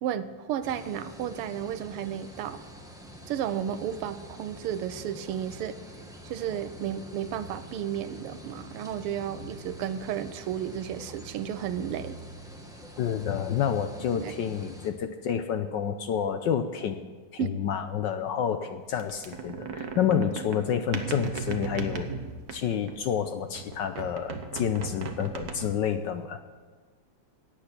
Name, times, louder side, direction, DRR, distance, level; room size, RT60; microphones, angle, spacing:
voice 1, 0.0-2.6 3.3-5.8 6.2-12.2 14.1-14.3 17.4-17.5 20.9-21.1, right 10 dB, 85° right, 12 dB, 1.6 m, -33 dB
sound 1, 0.6-14.9, equal, ahead, 0.9 m, -46 dB
voice 2, 13.0-17.0 17.3-22.1 22.5-26.4, left 8 dB, 70° left, 9 dB, 1.1 m, -29 dB
sound 2, 19.0-23.2 23.5-26.0, right 5 dB, 50° right, 1.3 m, -37 dB
16.5 x 9.1 x 5.9 m, 1.4 s
omnidirectional pair, 2.4 m